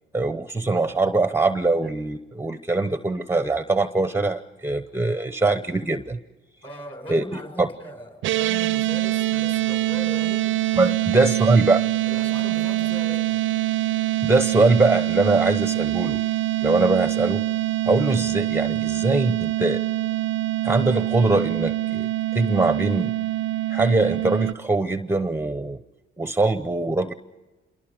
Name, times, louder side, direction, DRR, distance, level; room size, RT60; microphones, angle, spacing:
voice 1, 0.1-6.2 7.1-7.7 10.7-11.8 14.2-16.2 16.6-17.4 17.9-19.8 20.6-23.1 23.7-25.8 26.2-27.1, right 3 dB, 10° right, 10 dB, 0.8 m, -22 dB
voice 2, 6.6-11.5 12.1-13.4, equal, 25° left, 5 dB, 5.9 m, -39 dB
sound 1, 8.2-24.5, right 14 dB, 75° right, 0.6 m, -24 dB
28.0 x 23.0 x 5.1 m, 1.2 s
cardioid pair, 90°, 20 cm